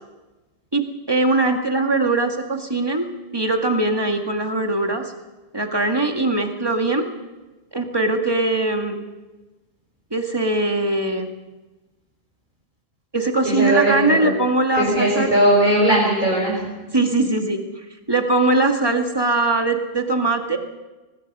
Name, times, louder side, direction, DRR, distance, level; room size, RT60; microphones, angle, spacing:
voice 1, 1.1-3.1 3.3-5.0 5.5-7.1 7.7-9.0 10.1-11.3 13.1-15.3 16.9-17.6 18.1-20.6, right 2 dB, 20° right, 3 dB, 2.0 m, -21 dB
voice 2, 13.4-14.4 14.7-16.7, right 1 dB, 45° right, -5 dB, 6.2 m, -19 dB
23.5 x 20.5 x 5.5 m, 1.2 s
omnidirectional pair, 1.1 m